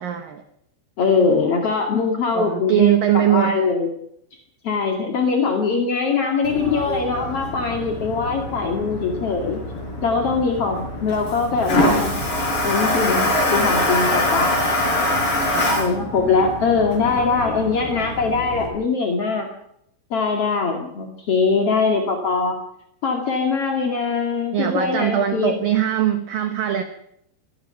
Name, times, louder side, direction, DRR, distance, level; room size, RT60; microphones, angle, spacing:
voice 1, 0.0-0.4 2.3-3.6 15.4-15.8 24.5-26.8, right 11 dB, 90° right, 7 dB, 1.9 m, -21 dB
voice 2, 1.0-3.9 4.6-9.6 10.0-12.2 12.6-14.7 15.8-19.5 20.1-22.6 23.0-25.5, left 4 dB, 45° left, 2 dB, 1.9 m, -22 dB
Toilet flush, 6.4-18.7, left 1 dB, 25° left, 5.1 m, -24 dB
24.5 x 19.5 x 5.7 m, 0.75 s
omnidirectional pair, 6.0 m